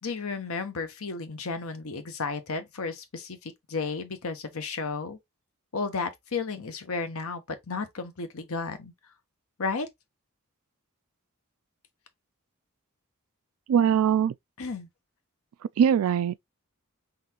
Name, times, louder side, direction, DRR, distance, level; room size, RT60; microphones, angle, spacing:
voice 1, 0.0-5.2 5.7-8.9 9.6-9.9 14.6-14.9, left 4 dB, 70° left, 0.9 m, -33 dB
voice 2, 13.7-14.3 15.8-16.4, right 8 dB, 70° right, 0.3 m, -22 dB
3.9 x 3.2 x 2.8 m
head